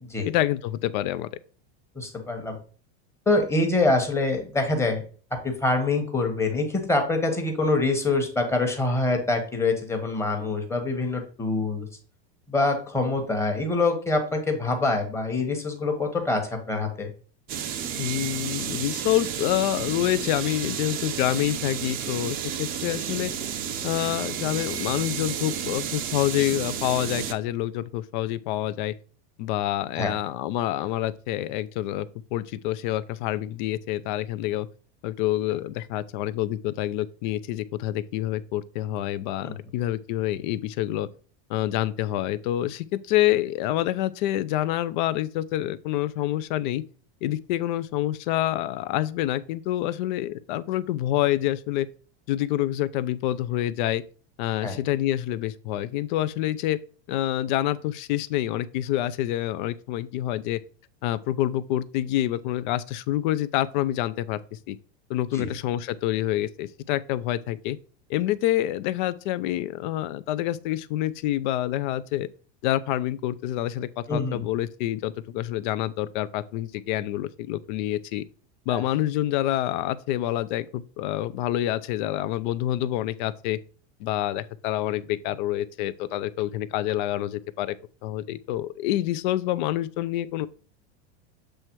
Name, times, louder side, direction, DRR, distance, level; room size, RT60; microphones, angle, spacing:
voice 1, 0.2-1.3 18.0-23.3 23.8-28.9 29.4-34.7 35.0-41.1 41.5-46.8 47.2-51.9 52.3-54.0 54.4-56.8 57.1-60.6 61.0-64.8 65.1-67.8 68.1-72.3 72.6-78.2 78.7-83.6 84.0-87.7 88.0-90.5, left 14 dB, 45° left, 0.4 m, -27 dB
voice 2, 1.9-2.6 3.3-5.0 5.4-11.9 12.5-17.1 30.0-30.1 39.4-39.6 54.6-54.8 65.3-65.5 74.1-74.4 78.7-78.8, left 2 dB, 10° left, 1.1 m, -25 dB
sound 1, 17.5-27.3, right 8 dB, 25° right, 0.6 m, -31 dB
7.6 x 3.3 x 4.5 m
supercardioid pair, 160°, 34 cm